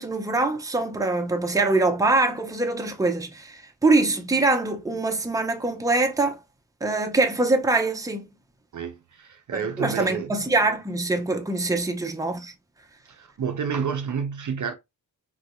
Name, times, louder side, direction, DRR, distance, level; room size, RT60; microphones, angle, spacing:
voice 1, 0.0-6.4 6.8-8.3 9.5-12.5, right 2 dB, 10° right, 0.7 m, -24 dB
voice 2, 8.7-10.3 11.7-11.8 13.1-14.7, right 6 dB, 50° right, 0.6 m, -30 dB
3.9 x 2.6 x 2.2 m
cardioid pair, 60°, 39 cm